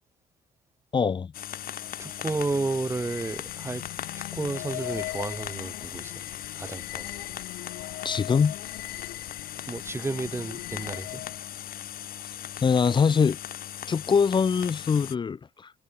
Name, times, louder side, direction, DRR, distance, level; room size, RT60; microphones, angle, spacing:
voice 1, 0.9-1.3 8.0-8.6 12.6-13.4 13.9-15.7, left 6 dB, 30° left, 0.7 m, -23 dB
sound 1, 1.3-15.1, left 11 dB, 60° left, 2.9 m, -39 dB
sound 2, 1.8-11.5, left 21 dB, 90° left, 1.1 m, -41 dB
voice 2, 2.0-3.8 4.2-6.1 6.5-7.1 9.7-11.2, right 3 dB, 15° right, 0.7 m, -32 dB
cardioid pair, 110°, 17 cm